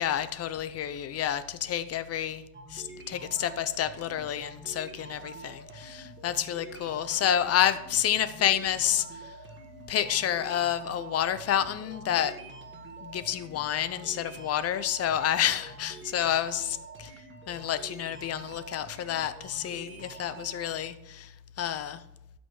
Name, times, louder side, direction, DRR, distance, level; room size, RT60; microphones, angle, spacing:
voice 1, 0.0-2.4 2.7-9.0 9.9-12.3 13.0-17.1 17.5-21.3 21.6-22.0, left 10 dB, 40° left, 13 dB, 0.5 m, -29 dB
sound 1, 2.5-20.7, right 4 dB, 30° right, 1.5 m, -47 dB
12.5 x 5.2 x 4.6 m, 0.83 s
cardioid pair, 165°, 39 cm